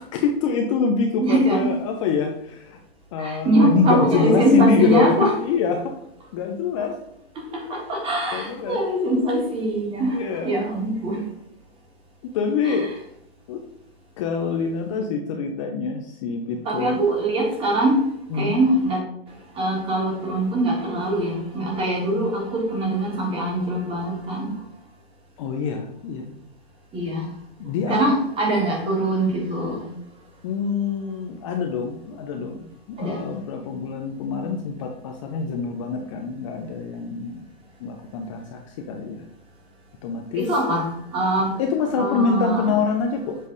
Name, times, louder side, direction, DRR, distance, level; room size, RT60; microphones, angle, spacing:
voice 1, 0.0-2.8 3.1-5.2 5.4-5.9 6.3-7.0 8.3-8.8 10.1-10.5 12.3-12.9 13.5-13.6 14.2-17.0 18.3-18.6 25.4-26.4 27.6-28.1 30.4-37.5 37.8-39.2 40.0-40.4 41.6-43.4, left 5 dB, 30° left, 3 dB, 0.6 m, -25 dB
voice 2, 1.2-1.7 3.2-5.3 6.8-6.9 7.3-11.2 12.6-12.9 16.6-18.1 18.3-19.0 19.3-24.5 26.9-27.3 27.9-29.9 33.0-33.3 40.3-41.6 42.0-42.7, right 1 dB, 15° right, -1 dB, 1.8 m, -23 dB
7.4 x 3.3 x 4.0 m, 0.77 s
hypercardioid pair, 150°, 31 cm